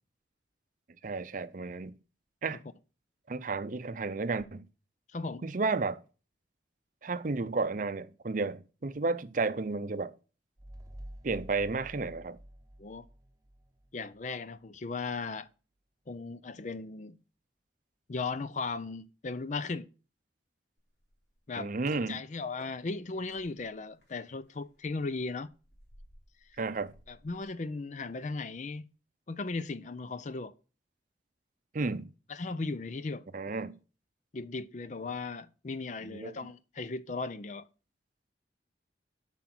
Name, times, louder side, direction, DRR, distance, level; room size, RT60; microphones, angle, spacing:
voice 1, 1.0-2.0 2.4-2.6 3.3-4.6 5.4-6.0 7.0-10.1 11.2-12.4 21.6-22.2 26.6-26.9 31.7-32.1 33.3-33.8 36.0-36.3, right 3 dB, 50° right, 0.6 m, -32 dB
voice 2, 5.1-5.4 12.8-13.1 13.9-15.5 16.1-17.2 18.1-19.9 21.5-25.5 27.1-28.9 29.3-30.5 32.3-33.6 34.3-37.7, left 3 dB, 45° left, 0.5 m, -37 dB
sound 1, 10.6-13.9, equal, 20° right, 0.9 m, -49 dB
sound 2, 20.8-22.1 22.6-28.2 28.5-28.7, left 1 dB, 70° left, 3.2 m, -60 dB
7.7 x 5.8 x 6.0 m
head